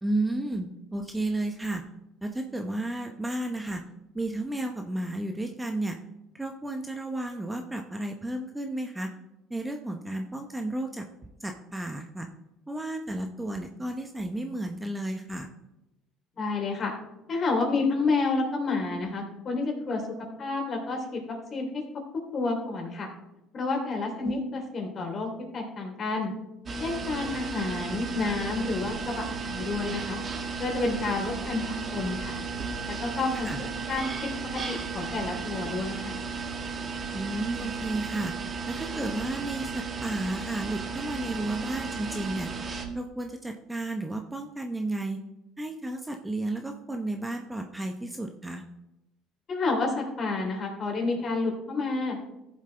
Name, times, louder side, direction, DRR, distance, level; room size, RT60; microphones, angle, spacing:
voice 1, 0.0-1.8 2.2-3.8 4.1-6.0 6.3-9.1 9.5-11.1 11.4-12.3 12.7-15.5 24.2-24.3 33.4-33.7 37.1-38.3 38.7-42.5 42.9-45.2 45.6-48.6, right 2 dB, 10° right, 4 dB, 0.8 m, -32 dB
voice 2, 16.3-16.9 17.3-20.0 20.4-21.8 22.3-23.1 23.5-26.3 26.8-30.2 30.6-31.6 31.9-32.3 32.9-33.5 33.9-34.3 34.7-36.2 49.5-52.2, left 3 dB, 40° left, 1 dB, 3.1 m, -29 dB
sound 1, 26.7-42.9, right 4 dB, 30° right, 1.5 m, -34 dB
14.0 x 7.3 x 3.3 m, 0.93 s
supercardioid pair, 105°, 0 cm